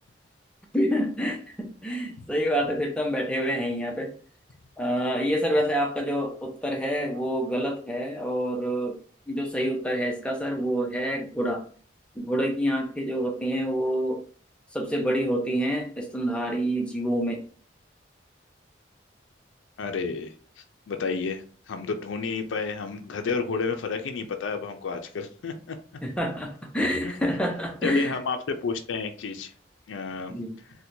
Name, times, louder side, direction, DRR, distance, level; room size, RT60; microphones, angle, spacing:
voice 1, 0.7-4.1 4.8-9.0 9.3-11.6 12.2-14.2 14.7-17.4 26.0-28.2 30.3-30.6, equal, 5° left, 1 dB, 0.5 m, -27 dB
voice 2, 19.8-25.8 27.0-27.1 27.8-29.5 29.9-30.3, left 4 dB, 85° left, 6 dB, 0.4 m, -31 dB
4.3 x 2.1 x 2.6 m, 0.42 s
head